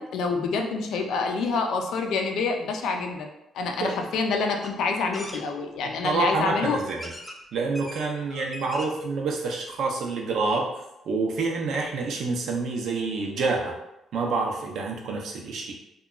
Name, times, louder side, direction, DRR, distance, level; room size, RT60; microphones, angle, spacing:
voice 1, 0.0-6.8 8.3-8.4, left 4 dB, 80° left, 3 dB, 0.4 m, -27 dB
sound 1, 4.6-4.7 5.1-5.4 6.3-6.4 7.0-7.4 7.7-8.1 8.4-9.0 9.4-9.5 9.7-9.8, left 1 dB, 15° left, 0.4 m, -40 dB
voice 2, 6.0-7.1 7.5-10.7 11.1-13.8 14.1-15.7, right 3 dB, 70° right, 0 dB, 0.5 m, -27 dB
2.8 x 2.3 x 2.3 m, 0.88 s
cardioid pair, 90°, 0 cm